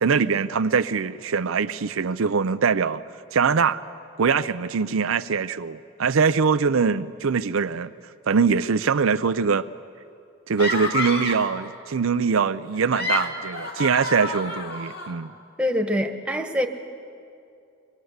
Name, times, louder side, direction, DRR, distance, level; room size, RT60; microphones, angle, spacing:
voice 1, 0.0-3.0 3.3-3.8 4.2-7.9 8.3-9.7 10.5-15.3, right 5 dB, 75° right, 0.5 m, -22 dB
sound 1, 10.6-11.6 12.7-15.1, left 2 dB, 50° left, 2.3 m, -29 dB
voice 2, 15.6-16.7, left 1 dB, 5° right, 1.3 m, -24 dB
24.5 x 22.0 x 8.0 m
head